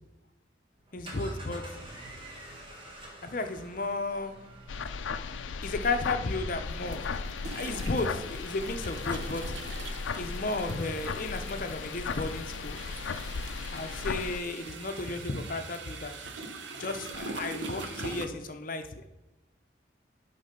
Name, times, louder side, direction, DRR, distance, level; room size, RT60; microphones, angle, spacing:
sound 1, 0.7-7.1, right 1 dB, 30° right, 1.8 m, -48 dB
voice 1, 0.9-1.6 3.2-4.3 5.6-7.3 7.5-9.5 10.2-12.8 13.7-16.2 16.8-18.8, left 3 dB, 45° left, 7 dB, 0.7 m, -33 dB
sound 2, 4.7-14.4, left 5 dB, 85° left, 0.4 m, -36 dB
sound 3, 5.2-5.4 6.7-18.3, right 3 dB, 70° right, 0.8 m, -43 dB
11.0 x 3.9 x 5.2 m, 1.0 s
head